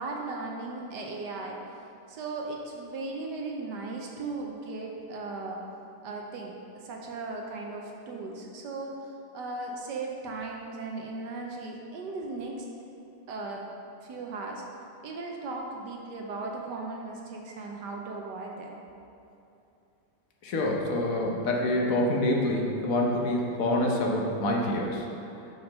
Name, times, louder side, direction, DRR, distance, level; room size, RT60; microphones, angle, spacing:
voice 1, 0.0-1.6 2.1-5.6 6.0-12.6 13.3-13.7 14.0-14.6 15.0-18.8, right 3 dB, 70° right, 0 dB, 1.2 m, -37 dB
voice 2, 20.4-25.0, left 1 dB, 55° left, -1 dB, 1.0 m, -26 dB
5.9 x 5.3 x 5.3 m, 2.7 s
omnidirectional pair, 2.1 m